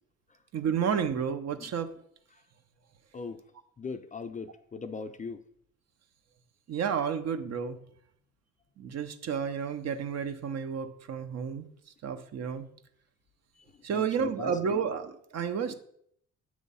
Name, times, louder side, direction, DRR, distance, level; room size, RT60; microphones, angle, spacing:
voice 1, 0.5-1.9 6.7-7.8 8.8-11.6 12.0-12.6 13.8-15.7, right 7 dB, 60° right, 9 dB, 0.7 m, -31 dB
voice 2, 3.8-5.4 13.6-14.8, left 4 dB, 25° left, 9 dB, 0.4 m, -40 dB
7.2 x 3.1 x 5.4 m, 0.67 s
cardioid pair, 90°, 30 cm